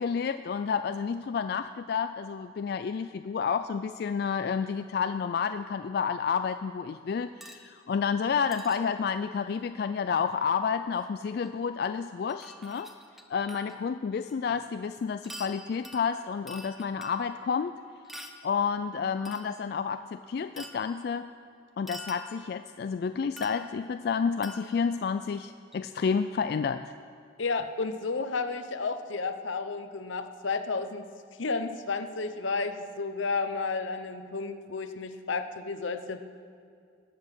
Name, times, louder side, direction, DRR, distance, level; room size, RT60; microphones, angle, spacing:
voice 1, 0.0-12.9 13.3-17.7 18.4-21.3 21.8-26.9, left 6 dB, 55° left, 10 dB, 0.3 m, -30 dB
sound 1, 7.4-7.7 8.5-8.8 10.9-11.0 11.4-11.5 12.3-13.8 14.3-14.4 15.2-17.5 18.0-18.5 19.2-19.6 20.6-21.0 21.9-22.7 23.4-24.0 24.4-25.0 25.7-25.8, equal, ahead, 0.7 m, -46 dB
voice 2, 27.4-31.1 31.4-36.2, left 4 dB, 85° left, 9 dB, 0.8 m, -32 dB
19.0 x 7.8 x 6.2 m, 2.3 s
head